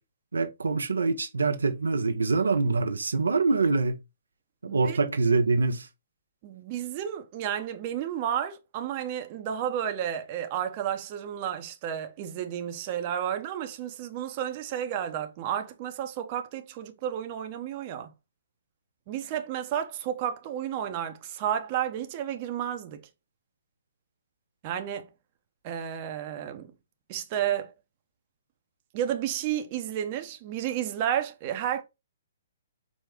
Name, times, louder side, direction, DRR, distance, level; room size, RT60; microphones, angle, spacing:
voice 1, 0.3-4.0 4.6-5.9, right 3 dB, 85° right, 0.5 m, -25 dB
voice 2, 6.4-18.1 19.1-23.0 24.6-25.1 25.6-26.7 27.1-27.7 28.9-31.8, right 10 dB, 40° right, 0.6 m, -32 dB
4.9 x 2.0 x 3.5 m
hypercardioid pair, 130°, 0 cm